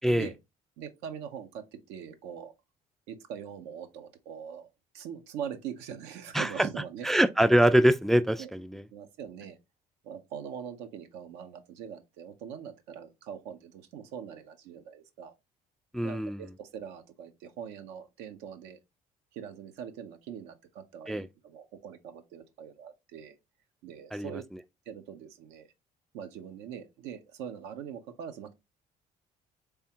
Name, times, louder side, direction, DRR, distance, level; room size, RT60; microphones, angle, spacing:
voice 1, 0.8-2.5 3.1-4.7 4.9-7.1 8.4-8.5 8.9-9.6 10.0-15.3 16.0-18.8 19.3-23.4 23.8-24.4 24.9-25.7 26.1-28.5, right 8 dB, 80° right, 0.6 m, -42 dB
voice 2, 6.3-6.7 7.0-8.8 15.9-16.4 21.1-21.3 24.1-24.3, right 1 dB, ahead, 0.3 m, -24 dB
3.5 x 3.4 x 2.7 m
hypercardioid pair, 60°, 18 cm